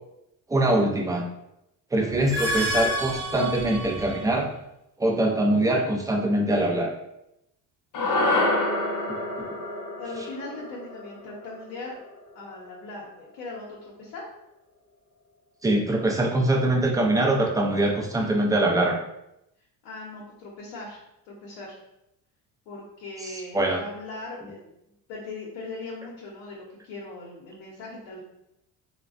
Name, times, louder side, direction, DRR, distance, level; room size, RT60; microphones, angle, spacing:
voice 1, 0.5-1.2 1.9-4.5 5.0-6.9 9.1-9.2 15.6-19.0 23.2-23.8, right 1 dB, 10° right, 0 dB, 0.3 m, -23 dB
voice 2, 2.0-2.3 9.4-12.0 12.3-14.3 17.4-18.5 19.8-21.8 22.7-24.7 25.1-28.2, left 2 dB, 85° left, -3 dB, 0.8 m, -40 dB
sound 1, 2.1-4.4, left 1 dB, 65° right, 0.8 m, -29 dB
sound 2, 7.9-12.4, left 2 dB, 50° left, 0.8 m, -28 dB
3.1 x 2.1 x 2.4 m, 0.84 s
cardioid pair, 90°, 41 cm